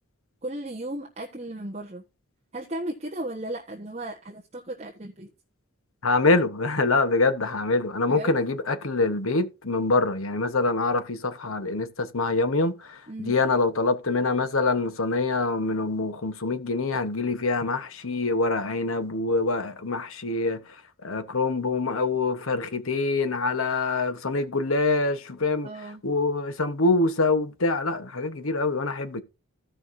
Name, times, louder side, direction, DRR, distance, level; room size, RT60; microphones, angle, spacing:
voice 1, 0.4-2.0 2.5-5.3 8.1-8.3 13.1-13.3 25.6-26.0, right 1 dB, 30° right, 1.3 m, -35 dB
voice 2, 6.0-20.6 21.0-25.7 26.0-29.2, left 3 dB, 75° left, 1.2 m, -25 dB
15.5 x 5.7 x 2.7 m
head